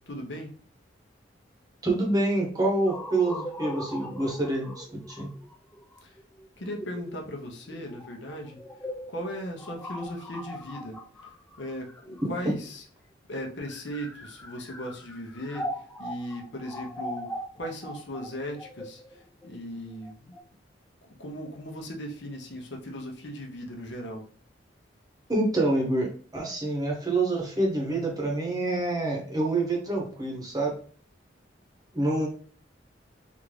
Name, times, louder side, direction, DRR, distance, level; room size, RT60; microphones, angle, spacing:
voice 1, 0.1-0.5 6.6-8.6 9.1-11.0 11.6-12.6 13.3-15.6 16.0-17.3 17.6-19.0 19.4-20.3 21.2-24.3, equal, 70° left, 1 dB, 0.8 m, -37 dB
voice 2, 1.8-5.3 12.4-12.5 25.3-30.7 31.9-32.3, right 2 dB, 20° right, 0 dB, 0.8 m, -27 dB
sound 1, 2.9-12.7 13.5-20.4, left 1 dB, 10° left, 0.3 m, -40 dB
3.6 x 2.5 x 3.2 m, 0.43 s
head